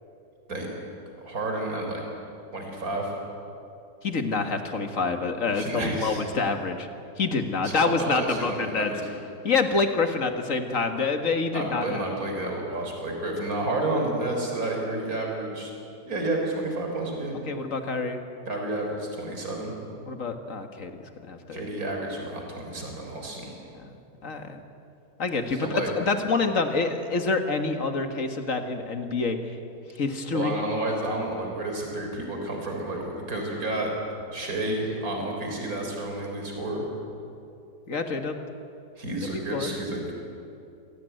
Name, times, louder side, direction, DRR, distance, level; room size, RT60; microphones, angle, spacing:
voice 1, 1.2-2.0 2.5-3.1 5.5-6.2 7.6-9.1 11.5-15.7 16.1-17.4 18.5-19.7 21.5-23.5 25.5-25.9 30.3-33.9 34.3-36.8 39.0-40.1, right 2 dB, 65° right, 1 dB, 4.3 m, -30 dB
voice 2, 4.0-6.9 7.2-8.9 9.4-12.1 17.5-18.2 20.1-21.6 23.8-23.9 24.2-24.6 25.2-29.4 30.0-30.5 37.9-38.4 39.5-39.8, left 4 dB, 55° left, 6 dB, 2.1 m, -27 dB
27.0 x 17.5 x 9.2 m, 2.7 s
omnidirectional pair, 1.7 m